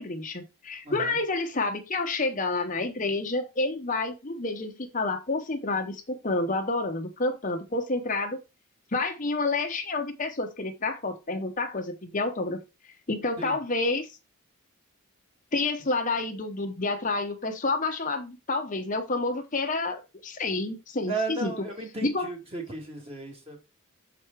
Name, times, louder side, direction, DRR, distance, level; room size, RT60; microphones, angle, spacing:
voice 1, 0.0-8.4 8.9-12.6 13.1-14.1 15.5-21.5 22.0-22.3, left 3 dB, 35° left, 5 dB, 0.8 m, -29 dB
voice 2, 0.8-1.2 13.4-13.6 21.1-23.6, right 3 dB, 25° right, 1 dB, 2.0 m, -35 dB
6.9 x 4.7 x 4.5 m, 0.27 s
head